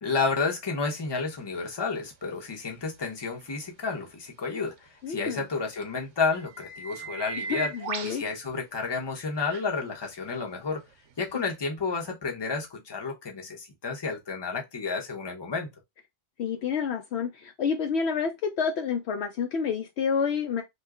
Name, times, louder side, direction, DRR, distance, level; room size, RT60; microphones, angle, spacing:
voice 1, 0.0-4.7 5.1-7.7 8.0-10.8 11.2-15.7, left 4 dB, 25° left, 0.8 m, -31 dB
sound 1, 1.8-1.9 5.8-5.9 6.3-8.2 9.5-9.6 11.2-11.3, right 5 dB, 80° right, 0.9 m, -36 dB
voice 2, 5.0-5.4 7.5-8.2 16.4-20.6, left 6 dB, 70° left, 0.8 m, -29 dB
2.9 x 2.3 x 3.6 m
omnidirectional pair, 1.3 m